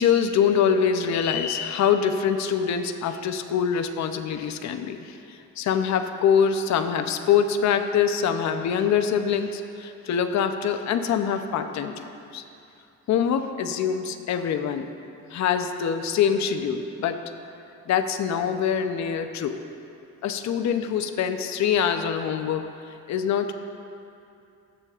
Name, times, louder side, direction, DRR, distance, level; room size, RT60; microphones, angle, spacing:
voice 1, 0.0-12.4 13.1-14.9 15.3-17.2 17.9-19.6 20.2-22.7 23.1-23.5, left 7 dB, 65° left, 7 dB, 0.7 m, -24 dB
18.5 x 7.0 x 2.5 m, 2.6 s
cardioid pair, 90°, 30 cm